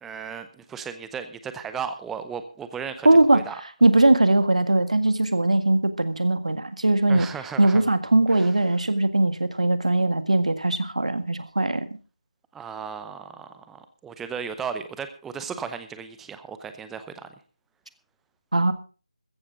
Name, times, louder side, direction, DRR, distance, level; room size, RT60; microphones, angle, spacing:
voice 1, 0.0-3.1 3.3-3.6 7.1-7.8 8.3-8.5 12.5-17.3, right 6 dB, 5° right, 10 dB, 0.7 m, -35 dB
voice 2, 3.1-3.4 3.8-7.3 7.6-11.9 18.5-18.7, right 2 dB, 70° right, 10 dB, 1.8 m, -20 dB
14.5 x 14.5 x 3.7 m, 0.36 s
figure-of-eight pair, 160°, 4 cm